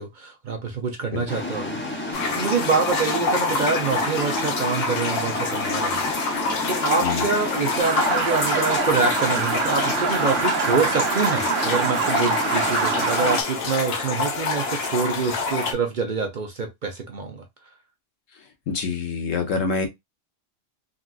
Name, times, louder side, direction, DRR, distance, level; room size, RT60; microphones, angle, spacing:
voice 1, 0.0-6.0 6.7-17.4, right 4 dB, 50° right, 0.6 m, -26 dB
sound 1, 1.3-13.4, left 2 dB, 10° left, 0.6 m, -31 dB
sound 2, 2.1-15.7, left 3 dB, 60° left, 0.9 m, -26 dB
sound 3, 7.8-13.4, right 8 dB, 75° right, 0.9 m, -26 dB
voice 2, 18.7-19.9, left 5 dB, 85° left, 1.2 m, -26 dB
3.7 x 2.3 x 2.3 m
omnidirectional pair, 1.3 m